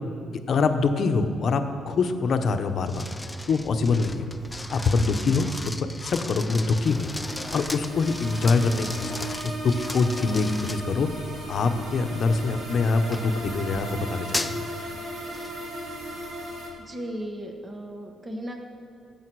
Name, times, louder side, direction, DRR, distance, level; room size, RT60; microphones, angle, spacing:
voice 1, 0.5-3.1 3.5-4.2 4.7-7.1 7.5-9.1 9.4-11.1 11.5-14.6, left 4 dB, 55° left, 7 dB, 0.8 m, -24 dB
sound 1, 2.8-11.3 11.9-12.2 13.1-14.7 15.3-15.5, left 1 dB, 10° left, 0.4 m, -36 dB
sound 2, 6.8-16.7, right 1 dB, 65° right, 3.2 m, -36 dB
voice 2, 16.9-18.6, equal, 25° right, 3 dB, 1.5 m, -35 dB
16.5 x 7.2 x 4.7 m, 2.4 s
cardioid pair, 90°, 0 cm